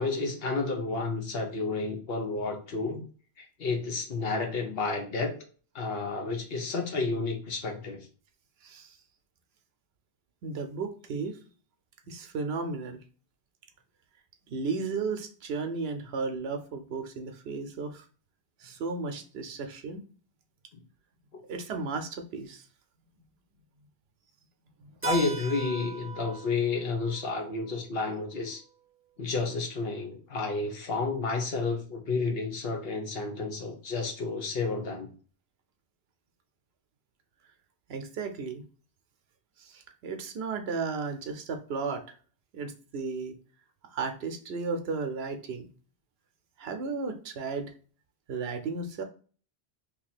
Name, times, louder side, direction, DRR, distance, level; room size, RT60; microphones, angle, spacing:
voice 1, 0.0-3.0 3.4-5.3 5.7-8.1 25.0-28.6 29.2-35.1, left 3 dB, 65° left, 3 dB, 1.0 m, -31 dB
voice 2, 8.6-9.0 10.4-11.4 12.1-13.0 14.5-18.0 18.6-20.0 21.5-22.7 24.8-24.9 37.9-38.6 39.6-42.1 42.5-43.3 43.9-45.7 46.6-47.7 48.3-49.0, right 4 dB, 75° right, 6 dB, 0.9 m, -34 dB
Keyboard (musical), 25.0-29.5, right 4 dB, 20° right, 0.4 m, -40 dB
2.8 x 2.7 x 4.1 m, 0.40 s
omnidirectional pair, 1.1 m